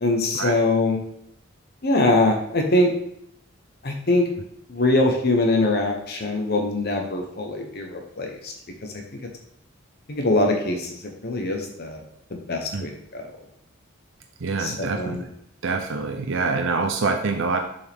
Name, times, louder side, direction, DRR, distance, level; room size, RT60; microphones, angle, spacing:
voice 1, 0.0-1.0 1.8-2.9 3.8-4.3 4.7-8.5 10.1-10.9 11.2-12.0 12.3-13.3 14.6-15.2, left 2 dB, 55° left, 2 dB, 1.0 m, -22 dB
voice 2, 14.4-15.2 15.6-17.6, right 4 dB, 70° right, 5 dB, 0.6 m, -25 dB
6.9 x 5.4 x 3.6 m, 0.73 s
head